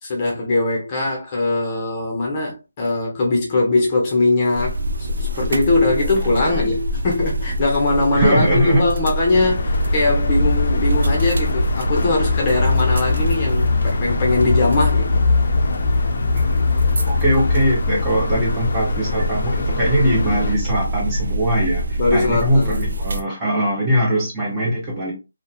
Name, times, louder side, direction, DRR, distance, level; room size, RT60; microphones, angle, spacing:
voice 1, 0.0-15.2 22.0-22.9, left 2 dB, 25° left, 0.8 m, -21 dB
sound 1, 4.5-23.2, right 1 dB, 65° right, 0.5 m, -26 dB
voice 2, 6.4-6.7 8.1-8.8 16.3-16.6 17.1-25.1, right 1 dB, 15° right, 0.8 m, -21 dB
sound 2, 9.3-20.5, left 3 dB, 55° left, 0.4 m, -21 dB
2.6 x 2.1 x 2.4 m
figure-of-eight pair, 160°, 0 cm